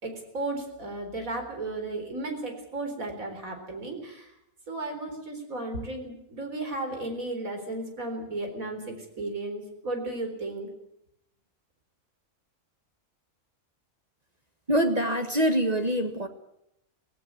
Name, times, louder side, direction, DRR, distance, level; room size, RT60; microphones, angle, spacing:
voice 1, 0.0-4.3 4.7-10.7, right 2 dB, 85° right, 5 dB, 4.6 m, -34 dB
voice 2, 14.7-16.3, equal, 30° right, 6 dB, 1.6 m, -24 dB
18.5 x 16.5 x 9.4 m, 0.80 s
omnidirectional pair, 1.4 m